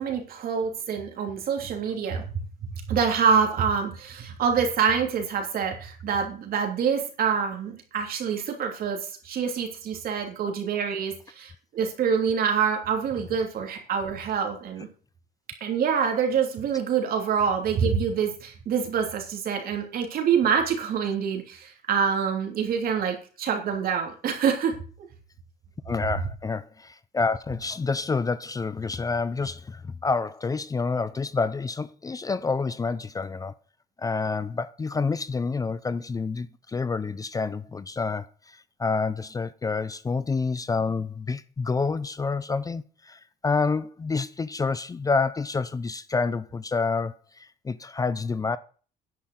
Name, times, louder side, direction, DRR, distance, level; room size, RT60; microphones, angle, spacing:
voice 1, 0.0-2.2 2.9-14.9 15.6-24.7, right 6 dB, 60° right, 3.1 m, -26 dB
voice 2, 25.9-33.5 34.0-48.6, left 4 dB, 20° left, 0.5 m, -28 dB
10.5 x 5.8 x 7.9 m
cardioid pair, 110°, 17 cm